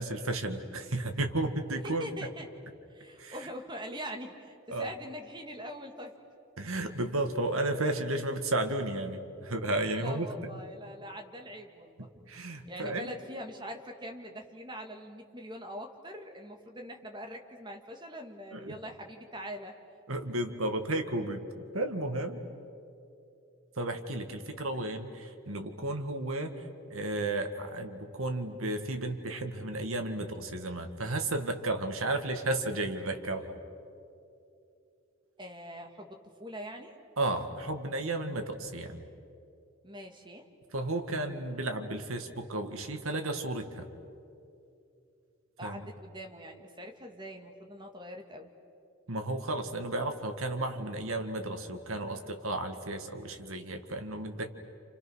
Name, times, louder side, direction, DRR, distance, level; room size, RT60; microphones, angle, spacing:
voice 1, 0.0-2.3 3.2-3.4 4.7-4.9 6.6-10.3 10.5-10.6 12.0-13.1 18.5-18.8 20.1-22.4 23.8-33.5 37.2-39.0 40.7-43.9 45.6-45.9 49.1-54.6, right 2 dB, 75° right, 6 dB, 1.9 m, -33 dB
voice 2, 1.8-2.5 2.9-6.1 10.0-12.1 12.7-19.7 35.4-36.9 39.8-40.4 45.6-48.5, equal, 20° right, 3 dB, 2.0 m, -43 dB
29.5 x 28.0 x 6.3 m, 2.7 s
head